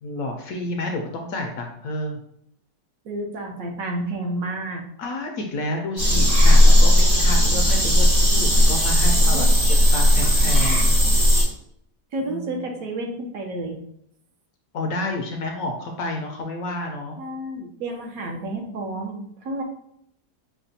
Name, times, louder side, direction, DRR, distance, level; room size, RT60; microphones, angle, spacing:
voice 1, 0.0-2.2 5.0-11.0 12.2-12.6 14.7-17.2, left 2 dB, 70° left, 2 dB, 0.9 m, -30 dB
voice 2, 3.0-4.8 9.3-9.5 12.1-13.8 17.2-19.6, right 2 dB, 65° right, 2 dB, 1.0 m, -30 dB
sound 1, 6.0-11.4, equal, 85° right, 2.4 m, -16 dB
5.7 x 2.2 x 2.6 m, 0.71 s
omnidirectional pair, 1.8 m